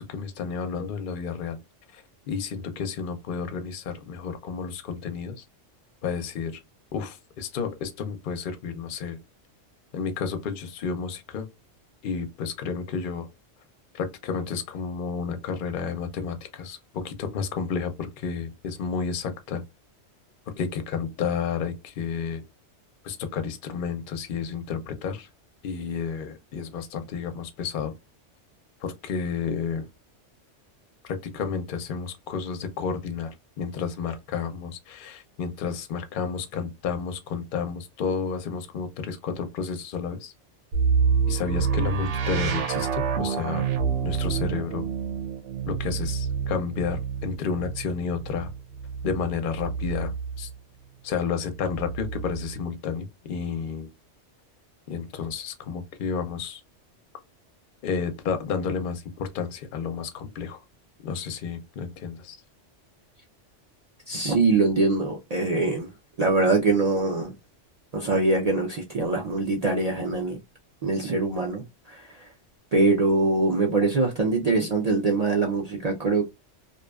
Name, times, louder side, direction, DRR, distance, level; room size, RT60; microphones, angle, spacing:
voice 1, 0.0-1.6 1.9-5.4 6.0-6.6 6.9-9.2 9.9-11.4 12.0-13.3 13.9-19.6 20.6-22.4 23.0-25.3 25.6-27.9 28.8-29.9 31.0-40.3 41.3-43.7 44.0-44.8 45.7-48.5 49.0-50.1 50.4-50.5 51.0-53.9 54.9-56.6 57.8-60.6 61.0-62.4, left 6 dB, 55° left, 0.6 m, -31 dB
sound 1, 40.7-50.5 51.5-52.6, right 6 dB, 75° right, 0.9 m, -28 dB
voice 2, 64.1-65.9 66.2-67.3 67.9-70.4 70.8-72.3 72.7-76.2, right 3 dB, 55° right, 0.4 m, -23 dB
2.5 x 2.3 x 2.2 m
omnidirectional pair, 1.3 m